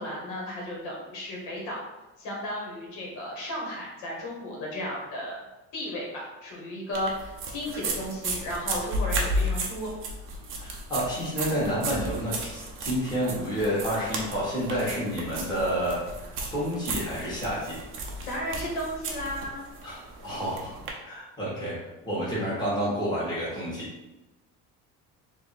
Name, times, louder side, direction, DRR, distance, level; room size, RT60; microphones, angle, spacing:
voice 1, 0.0-1.8 2.2-5.4 5.7-9.9 18.3-19.7, equal, 80° left, -2 dB, 1.3 m, -34 dB
sound 1, 6.9-20.9, right 1 dB, 45° right, 0.6 m, -34 dB
voice 2, 10.6-16.0 16.5-17.8 19.8-21.7 22.0-23.9, equal, 15° left, -8 dB, 1.1 m, -29 dB
3.3 x 2.5 x 4.0 m, 1.0 s
cardioid pair, 180°, 30 cm